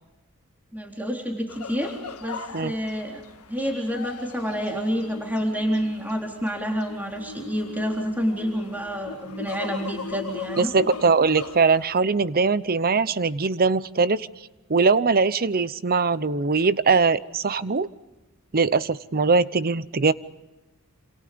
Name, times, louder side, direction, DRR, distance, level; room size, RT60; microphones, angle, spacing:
voice 1, 0.7-1.9 2.2-3.2 3.5-10.7, equal, 10° right, 0 dB, 3.8 m, -28 dB
sound 1, 1.5-12.0, left 5 dB, 85° left, 1.6 m, -39 dB
voice 2, 10.6-14.3 14.7-17.9 18.5-20.1, right 4 dB, 45° right, 16 dB, 0.8 m, -21 dB
29.0 x 27.5 x 5.2 m, 1.1 s
head